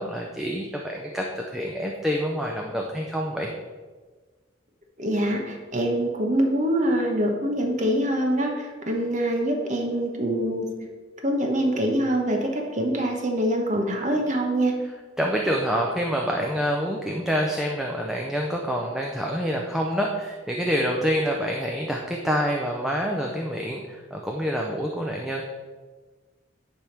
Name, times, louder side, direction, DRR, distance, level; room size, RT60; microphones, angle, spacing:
voice 1, 0.0-3.5 15.2-25.4, equal, ahead, -1 dB, 0.5 m, -27 dB
voice 2, 5.0-10.7 11.2-14.8, right 1 dB, 35° right, 2 dB, 1.0 m, -24 dB
10.0 x 3.5 x 5.9 m, 1.4 s
head